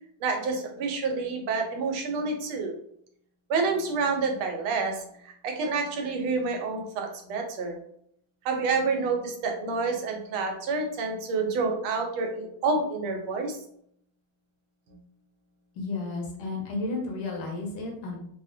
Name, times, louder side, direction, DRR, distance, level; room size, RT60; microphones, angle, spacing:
voice 1, 0.2-2.7 3.5-7.8 8.4-13.6 14.9-15.0, right 4 dB, 85° right, 3 dB, 1.5 m, -28 dB
voice 2, 15.8-18.2, left 3 dB, 85° left, 1 dB, 1.6 m, -32 dB
3.9 x 2.1 x 2.6 m, 0.68 s
omnidirectional pair, 2.2 m